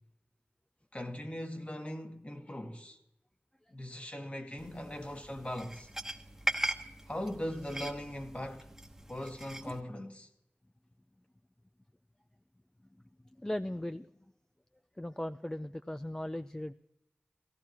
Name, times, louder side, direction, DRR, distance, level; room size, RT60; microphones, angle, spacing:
voice 1, 0.9-3.0 3.7-5.9 7.1-8.7 9.1-10.3, left 1 dB, 30° left, 1.5 m, -40 dB
sound 1, 4.6-9.8, right 1 dB, 10° right, 1.1 m, -39 dB
voice 2, 13.4-14.1 15.0-16.7, left 1 dB, 15° left, 0.4 m, -37 dB
17.5 x 15.5 x 3.0 m
wide cardioid pair, 45°, 4 cm